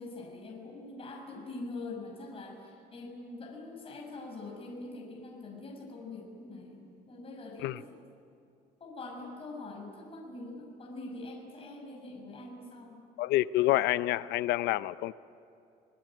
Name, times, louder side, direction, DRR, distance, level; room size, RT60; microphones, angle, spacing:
voice 1, 0.0-7.9 8.8-13.0, left 2 dB, 35° left, 0 dB, 6.2 m, -44 dB
voice 2, 13.2-15.1, left 15 dB, 85° left, 16 dB, 0.6 m, -28 dB
25.5 x 21.5 x 9.0 m, 2.6 s
cardioid pair, 110°, 17 cm